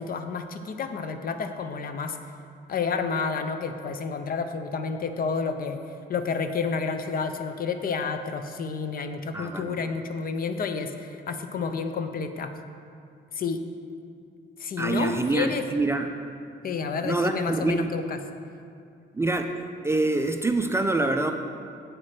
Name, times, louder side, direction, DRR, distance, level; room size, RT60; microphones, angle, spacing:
voice 1, 0.0-2.2 2.7-5.8 6.1-12.6 13.3-13.6 14.6-15.6 16.6-18.2, left 5 dB, 45° left, 8 dB, 0.5 m, -30 dB
voice 2, 9.3-9.9 14.8-16.1 17.0-17.9 19.1-19.5 19.8-21.3, right 2 dB, 15° right, 5 dB, 0.3 m, -25 dB
7.6 x 4.7 x 4.3 m, 2.4 s
cardioid pair, 90°, 20 cm